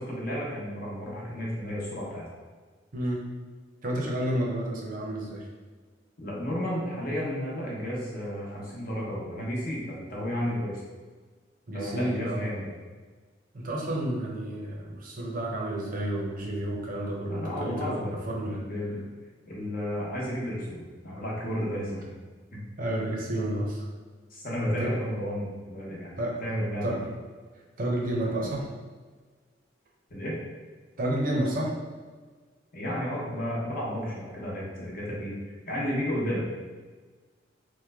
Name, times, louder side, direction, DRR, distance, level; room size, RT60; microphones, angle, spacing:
voice 1, 0.0-2.3 6.2-10.8 11.7-12.7 17.3-18.2 18.5-19.0 19.5-22.2 22.5-22.6 24.3-27.0 30.1-30.4 32.7-35.3 35.7-36.4, equal, 50° left, -5 dB, 0.9 m, -32 dB
voice 2, 2.9-3.2 3.8-5.5 11.7-12.5 13.5-18.6 22.8-23.9 24.5-25.0 25.9-26.4 26.8-27.1 27.8-28.6 31.0-31.7, right 1 dB, 50° right, -2 dB, 0.7 m, -30 dB
3.1 x 2.1 x 3.4 m, 1.4 s
head